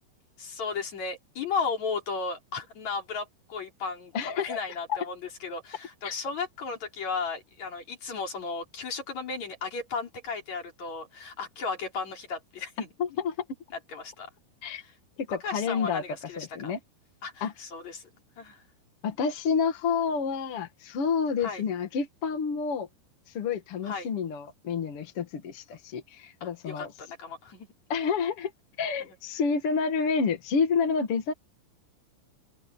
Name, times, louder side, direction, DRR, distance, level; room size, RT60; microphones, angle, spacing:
voice 1, 0.4-12.9 13.9-14.3 14.7-14.9 15.4-16.7 17.2-18.1 18.4-18.6 21.4-21.6 23.8-24.1 26.4-27.7, left 4 dB, 40° left, 5.1 m, -35 dB
voice 2, 4.1-4.6 4.9-5.0 6.0-6.1 13.0-13.3 14.6-14.8 15.3-16.0 16.4-16.8 17.4-17.5 19.0-22.9 23.3-26.9 27.9-28.5 28.8-31.3, left 5 dB, 55° left, 1.5 m, -29 dB
open air
omnidirectional pair, 5.3 m